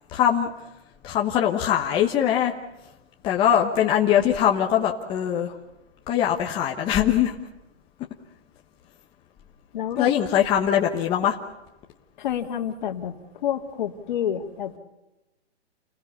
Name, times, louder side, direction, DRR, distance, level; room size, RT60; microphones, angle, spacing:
voice 1, 0.1-0.5 1.0-2.5 3.2-5.5 6.1-7.4 10.0-11.4, left 10 dB, 15° left, 1 dB, 1.2 m, -22 dB
voice 2, 9.7-10.1 12.2-14.8, left 9 dB, 45° left, 6 dB, 2.3 m, -29 dB
30.0 x 21.0 x 6.9 m, 0.98 s
hypercardioid pair, 155°, 34 cm